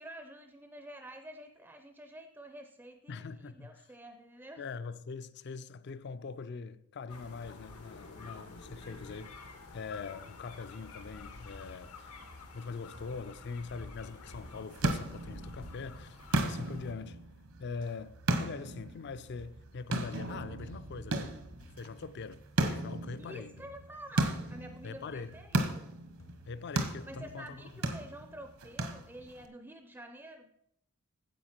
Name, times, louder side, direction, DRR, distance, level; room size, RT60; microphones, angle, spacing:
voice 1, 0.0-4.6 8.8-8.9 23.2-25.9 27.0-30.5, right 1 dB, 10° right, 0.4 m, -49 dB
voice 2, 3.1-3.9 4.6-9.3 9.7-12.2 12.5-17.2 17.6-21.4 21.7-23.5 24.8-25.3 26.5-27.7, left 4 dB, 50° left, 0.4 m, -43 dB
sound 1, 7.1-16.9, left 3 dB, 90° left, 1.4 m, -49 dB
sound 2, 12.3-12.7 12.9-13.4 13.6-14.0 14.3-14.7 14.9-15.3 15.6-15.8 16.9-17.1 17.8-17.9 18.7-18.9 19.4-19.6 20.0-20.2 20.6-20.7 21.6-21.8 22.7-23.0 23.6-23.9 24.5-24.8 25.3-25.5 26.2-26.5 27.0-27.3 27.9-28.1, left 1 dB, 70° left, 1.2 m, -55 dB
sound 3, 14.3-29.5, right 1 dB, 70° right, 1.0 m, -36 dB
9.2 x 7.7 x 4.3 m
head